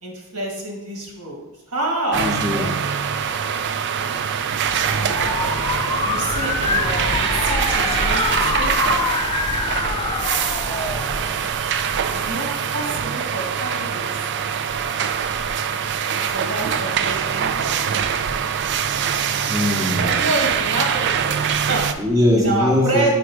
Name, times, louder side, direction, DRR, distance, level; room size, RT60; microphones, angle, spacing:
voice 1, 0.0-2.3 6.0-9.1 12.0-12.5 12.7-14.3 16.1-17.8 19.9-21.3 21.7-21.9 22.4-23.1, right 2 dB, 75° right, 0 dB, 1.7 m, -27 dB
voice 2, 2.1-2.7 19.5-20.3 22.0-23.1, left 1 dB, 15° right, -2 dB, 0.9 m, -21 dB
sound 1, 2.1-21.9, right 7 dB, 50° right, 0.4 m, -23 dB
sound 2, 4.6-11.8, left 3 dB, 20° left, 0.3 m, -25 dB
5.2 x 4.7 x 4.6 m, 1.0 s
head